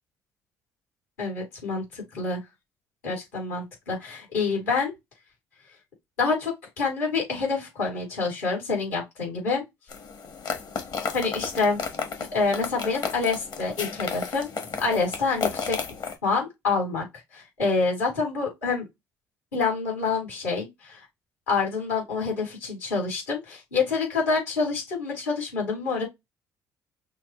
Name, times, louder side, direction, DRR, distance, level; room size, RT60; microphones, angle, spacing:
voice 1, 1.2-2.4 3.0-4.9 6.2-9.6 11.1-11.8 12.3-14.5 14.8-15.8 16.2-17.0 17.3-18.8 19.5-21.0 21.5-26.0, left 4 dB, 85° left, 3.3 m, -27 dB
sound 1, 9.9-16.2, left 5 dB, 50° left, 1.3 m, -33 dB
6.3 x 2.3 x 3.0 m
hypercardioid pair, 55°, 9 cm